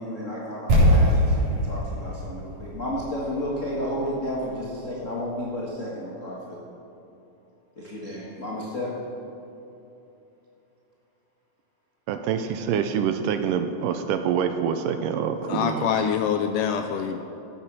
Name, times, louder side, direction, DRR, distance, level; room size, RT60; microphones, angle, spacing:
voice 1, 0.0-6.6 7.8-8.9 15.4-15.5 16.6-16.9, equal, 60° left, -5 dB, 0.8 m, -32 dB
sound 1, 0.7-4.6 4.9-5.0, equal, 65° right, 5.3 m, -23 dB
voice 2, 12.1-15.9, right 7 dB, 80° right, 7 dB, 2.0 m, -26 dB
voice 3, 15.5-17.2, left 8 dB, 85° left, 6 dB, 1.9 m, -25 dB
14.5 x 8.7 x 6.0 m, 2.9 s
omnidirectional pair, 4.2 m